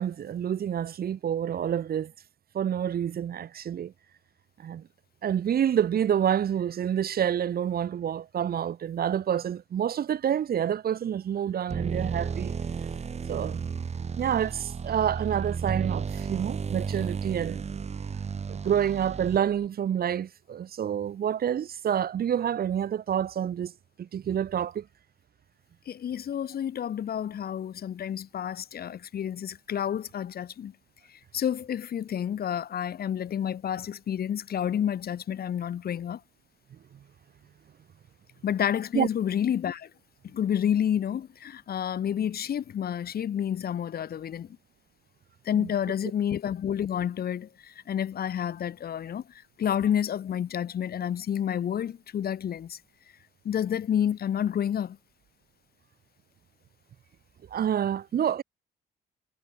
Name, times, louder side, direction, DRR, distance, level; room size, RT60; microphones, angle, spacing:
voice 1, 0.0-2.1 2.5-3.9 4.6-4.8 5.2-12.5 13.3-13.7 14.2-17.6 18.5-23.7 24.0-24.8 38.9-39.1 45.6-45.7 57.5-58.4, right 9 dB, 60° right, 4.4 m, -28 dB
sound 1, 11.7-19.7, right 6 dB, 40° right, 2.2 m, -33 dB
voice 2, 25.9-30.7 31.1-36.2 38.4-39.9 40.2-44.6 45.5-49.2 49.6-52.8 53.4-55.0, left 9 dB, 60° left, 7.4 m, -29 dB
cardioid pair, 90°, 18 cm